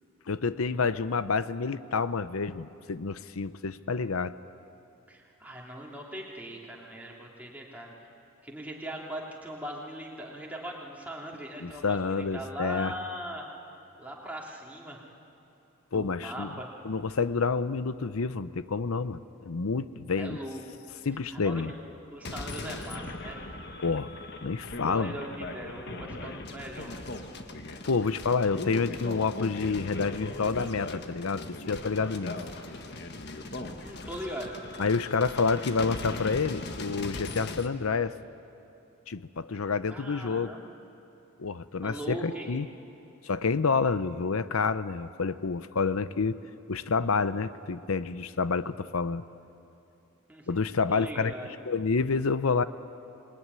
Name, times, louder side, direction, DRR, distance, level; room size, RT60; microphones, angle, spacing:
voice 1, 0.3-4.3 11.6-12.9 15.9-16.5 16.8-20.4 21.0-21.7 23.8-24.1 24.4-25.2 27.9-32.4 34.8-38.2 39.1-40.5 41.4-42.7 43.2-46.4 46.7-49.2 50.5-51.3 51.7-52.6, left 4 dB, 85° left, 14 dB, 0.7 m, -28 dB
voice 2, 5.1-8.1 8.4-13.4 14.0-15.0 15.9-16.7 20.2-20.8 21.3-21.7 22.1-23.5 24.9-26.9 33.8-34.5 39.9-40.6 41.8-42.5 50.3-51.6, right 1 dB, 5° right, -2 dB, 3.2 m, -40 dB
sound 1, 22.2-37.7, left 2 dB, 50° left, 1.6 m, -39 dB
26.5 x 21.0 x 9.7 m, 2.8 s
head